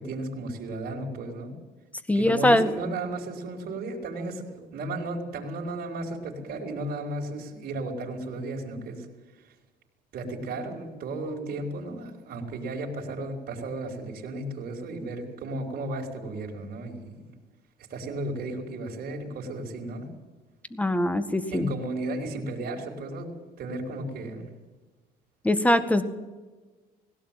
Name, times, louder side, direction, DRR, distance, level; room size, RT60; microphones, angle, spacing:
voice 1, 0.0-1.5 2.1-9.1 9.4-9.5 10.1-17.2 17.9-20.1 21.5-23.3 23.6-24.5, right 2 dB, 60° right, 0 dB, 4.4 m, -34 dB
voice 2, 2.1-2.7 20.7-21.7 25.4-26.0, left 1 dB, 10° left, 11 dB, 1.8 m, -22 dB
19.5 x 17.0 x 9.1 m, 1.3 s
cardioid pair, 110°, 17 cm